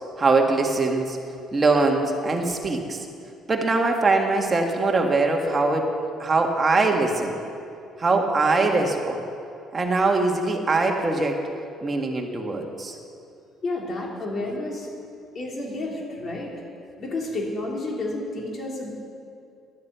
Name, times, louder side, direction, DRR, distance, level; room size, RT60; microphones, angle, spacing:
voice 1, 0.2-1.2 1.5-3.0 3.5-5.9 6.2-7.4 8.0-9.2 9.7-11.4 11.8-13.0, right 3 dB, 25° right, 2 dB, 1.8 m, -22 dB
voice 2, 13.6-14.9 15.4-16.5 17.0-18.9, left 2 dB, 40° left, -2 dB, 3.3 m, -30 dB
11.5 x 10.5 x 8.1 m, 2.5 s
cardioid pair, 115°, 0 cm